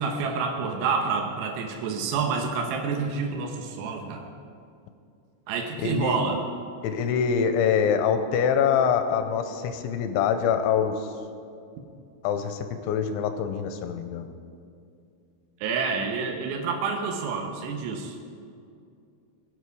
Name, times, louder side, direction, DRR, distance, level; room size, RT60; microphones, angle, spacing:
voice 1, 0.0-4.3 5.5-6.4 15.6-18.2, right 5 dB, 75° right, 3 dB, 2.8 m, -28 dB
voice 2, 5.8-6.2 6.8-11.0 12.2-14.3, left 7 dB, 85° left, 8 dB, 3.0 m, -24 dB
21.5 x 8.4 x 4.8 m, 2.4 s
omnidirectional pair, 5.6 m